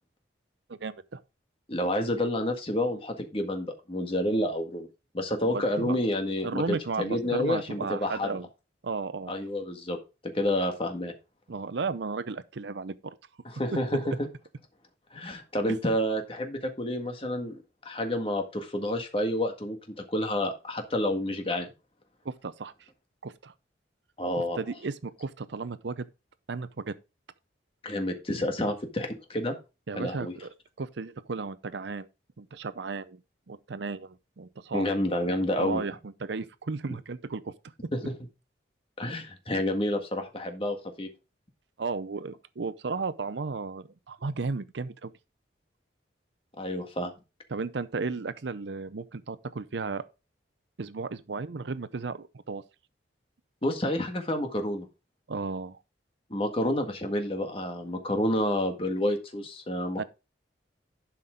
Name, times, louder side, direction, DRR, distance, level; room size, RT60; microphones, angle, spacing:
voice 1, 0.7-1.2 5.4-6.0 6.4-8.5 8.8-9.3 11.5-13.2 13.7-13.8 14.0-14.2 22.2-22.7 23.2-23.5 24.3-26.1 26.5-26.9 29.9-30.5 30.8-32.1 32.4-33.2 33.5-34.9 35.6-37.5 41.8-45.1 47.5-50.0 50.8-52.6 55.3-55.8 60.0-60.1, right 4 dB, 70° right, 0.6 m, -34 dB
voice 2, 1.7-4.9 5.1-8.4 9.3-10.0 10.3-11.1 13.4-14.3 15.1-19.8 20.1-21.7 24.2-24.6 27.8-29.5 29.9-30.3 34.7-35.8 37.9-38.1 39.0-41.1 46.6-47.1 53.6-54.8 56.3-60.0, left 1 dB, 30° left, 1.7 m, -29 dB
11.5 x 5.9 x 3.6 m
head